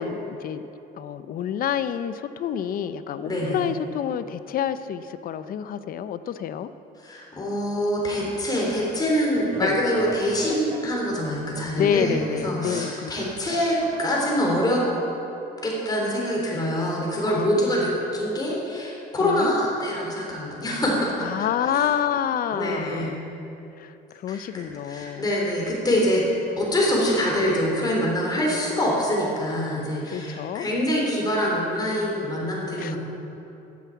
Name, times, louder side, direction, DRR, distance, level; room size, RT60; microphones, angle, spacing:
voice 1, 0.0-6.7 9.6-9.8 11.7-13.3 17.3-17.5 19.2-19.5 21.2-23.2 23.8-25.2 30.1-30.7 32.8-33.0, left 9 dB, 60° left, 13 dB, 0.6 m, -28 dB
voice 2, 3.2-3.6 7.0-14.9 15.6-21.8 22.5-23.2 24.3-26.2 26.6-33.0, equal, 25° left, -3 dB, 3.4 m, -25 dB
sound 1, 9.3-14.3, right 4 dB, 30° right, 0.9 m, -39 dB
13.0 x 8.6 x 7.2 m, 2.9 s
cardioid pair, 110°, 17 cm